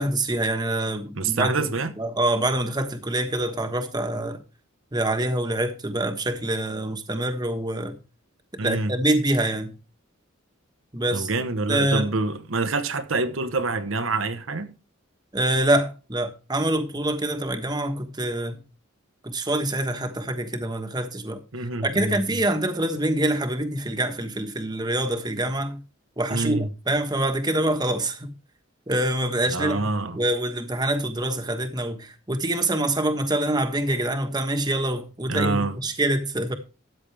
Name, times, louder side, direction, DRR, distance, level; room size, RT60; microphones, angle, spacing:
voice 1, 0.0-1.6 2.0-4.4 4.9-7.9 8.6-9.8 10.9-11.3 11.7-12.1 15.3-18.6 19.2-25.8 26.2-28.3 28.9-36.5, right 1 dB, 20° right, 1.4 m, -25 dB
voice 2, 1.1-1.9 8.6-8.9 11.1-14.7 21.5-22.4 26.3-26.7 29.5-30.2 35.3-35.8, right 3 dB, 70° right, 1.1 m, -26 dB
13.5 x 9.1 x 3.4 m
head